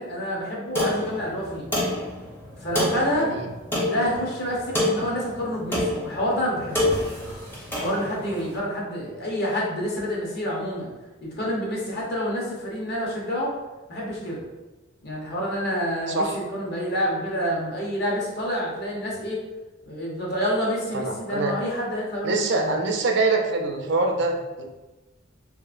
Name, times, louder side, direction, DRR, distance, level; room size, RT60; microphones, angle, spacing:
voice 1, 0.0-1.7 2.6-3.3 3.7-7.2 7.8-10.9 11.2-13.5 13.9-14.4 15.0-16.2 16.5-19.4 19.9-22.7, equal, 55° left, -4 dB, 0.7 m, -28 dB
sound 1, 0.7-8.5, left 1 dB, 10° left, 0.5 m, -28 dB
voice 2, 3.1-3.5 16.1-16.4 20.9-21.6 22.2-24.6, right 3 dB, 60° right, 3 dB, 0.4 m, -24 dB
2.8 x 2.4 x 2.4 m, 1.1 s
head